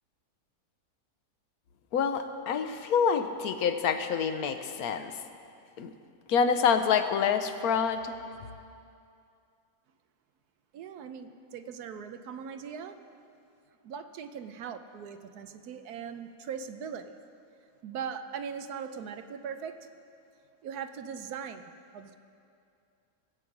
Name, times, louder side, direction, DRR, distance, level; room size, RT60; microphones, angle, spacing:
voice 1, 1.9-5.2 5.8-5.9 6.3-8.1, left 6 dB, 75° left, 8 dB, 1.2 m, -27 dB
voice 2, 10.7-12.9 13.8-17.1 17.8-19.8 20.6-22.1, right 7 dB, 80° right, 8 dB, 1.2 m, -40 dB
19.0 x 7.9 x 5.9 m, 2.5 s
omnidirectional pair, 1.6 m